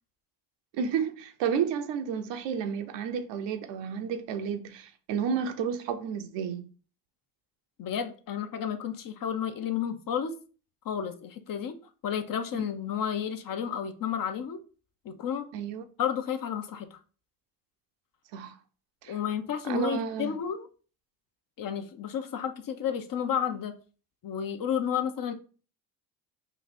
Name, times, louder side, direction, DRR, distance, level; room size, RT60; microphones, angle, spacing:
voice 1, 0.7-6.6 15.5-15.8 18.3-18.6 19.0-19.2 19.7-20.4, right 7 dB, 70° right, 0.7 m, -31 dB
voice 2, 7.8-10.3 10.8-11.8 12.0-14.6 15.0-15.5 16.0-16.9 19.1-20.7 21.6-23.7 24.2-25.3, left 8 dB, 45° left, 0.8 m, -31 dB
3.1 x 2.6 x 4.1 m
supercardioid pair, 60°, 45 cm